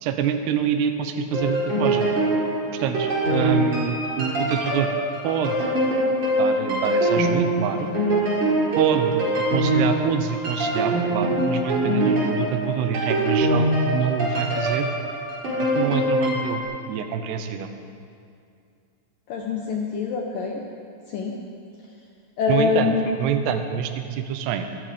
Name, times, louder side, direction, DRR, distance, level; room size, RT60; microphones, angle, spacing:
voice 1, 0.0-2.1 2.7-4.9 5.2-5.7 6.4-7.9 8.8-14.9 15.8-16.6 16.9-17.7 22.5-24.7, right 8 dB, 75° right, 7 dB, 2.7 m, -26 dB
sound 1, 1.3-16.6, right 1 dB, 40° right, 5.1 m, -23 dB
voice 2, 19.3-20.6 21.1-21.3 22.4-23.0, left 5 dB, 80° left, 0 dB, 2.0 m, -24 dB
23.5 x 11.5 x 5.1 m, 2.4 s
omnidirectional pair, 5.6 m